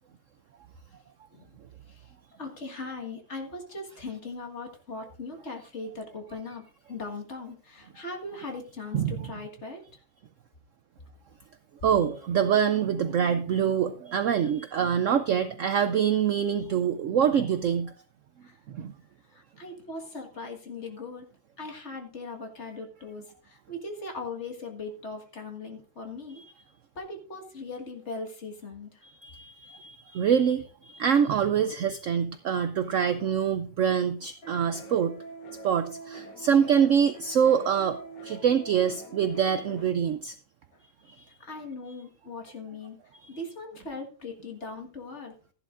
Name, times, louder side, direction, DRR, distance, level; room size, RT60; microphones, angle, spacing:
voice 1, 2.4-9.8 18.4-18.6 19.3-21.3 21.6-26.4 27.0-29.0 31.8-31.9 41.4-43.0 43.3-45.3, left 3 dB, 40° left, 3 dB, 1.9 m, -39 dB
voice 2, 11.8-17.9 18.7-18.9 26.4-26.5 29.2-35.2 35.6-38.0 38.2-40.3, right 8 dB, 65° right, 10 dB, 0.8 m, -25 dB
sound 1, 34.4-39.9, right 3 dB, 90° left, 2.2 m, -43 dB
14.5 x 11.0 x 2.5 m, 0.40 s
omnidirectional pair, 1.8 m